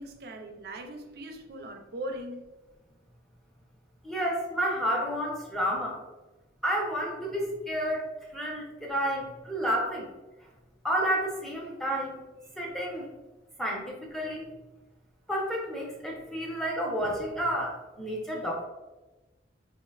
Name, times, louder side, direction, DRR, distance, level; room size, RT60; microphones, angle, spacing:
voice 1, 0.0-2.4, right 1 dB, 55° right, 4 dB, 0.4 m, -39 dB
voice 2, 4.0-6.0 6.6-8.0 8.3-10.1 10.8-12.2 12.6-13.1 13.6-14.5 15.3-18.7, equal, ahead, -3 dB, 0.5 m, -30 dB
4.0 x 2.1 x 2.2 m, 1.1 s
head